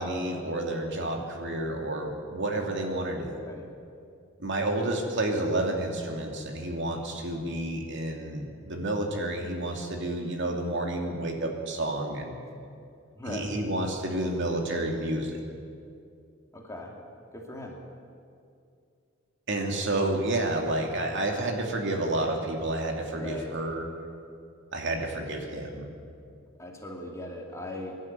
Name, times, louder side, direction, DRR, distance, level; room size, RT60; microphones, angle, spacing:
voice 1, 0.0-3.4 4.4-12.3 13.3-15.4 19.5-23.8 24.7-25.9, right 1 dB, 60° right, 2 dB, 2.7 m, -30 dB
voice 2, 13.2-13.5 16.5-17.0 17.3-17.8 23.2-23.5 26.6-28.0, left 1 dB, 15° left, 0 dB, 2.6 m, -39 dB
24.0 x 12.0 x 9.2 m, 2.4 s
head